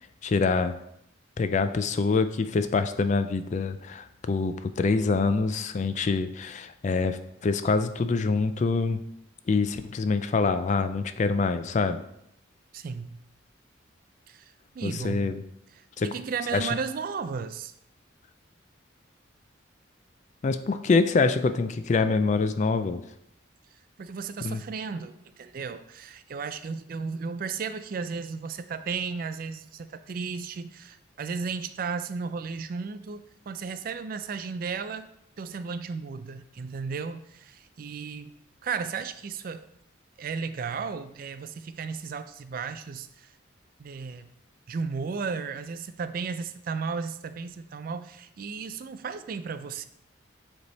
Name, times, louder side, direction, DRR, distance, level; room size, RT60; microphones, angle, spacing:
voice 1, 0.2-0.8 1.4-9.0 9.5-12.0 14.8-15.4 16.0-16.1 16.5-16.7 20.4-23.0 24.4-24.6, left 4 dB, 35° left, 11 dB, 0.3 m, -25 dB
voice 2, 12.7-13.2 14.3-14.4 14.7-15.3 16.0-17.7 24.0-35.1 35.4-38.3 38.6-39.7 40.2-43.3 43.8-44.3 44.7-49.9, right 5 dB, 45° right, 11 dB, 0.3 m, -34 dB
7.9 x 3.4 x 4.0 m, 0.77 s
head